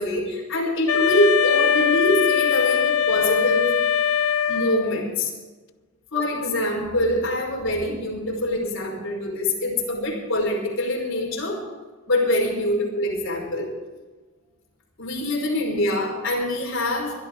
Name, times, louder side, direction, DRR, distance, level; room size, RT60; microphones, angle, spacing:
voice 1, 0.0-3.7 4.5-5.3 6.1-11.6 12.1-13.7 15.0-17.1, left 1 dB, 65° left, -1 dB, 5.3 m, -24 dB
Wind instrument woodwind instrument, 0.9-5.1, left 8 dB, 85° left, 0.7 m, -21 dB
21.5 x 12.5 x 4.8 m, 1.3 s
head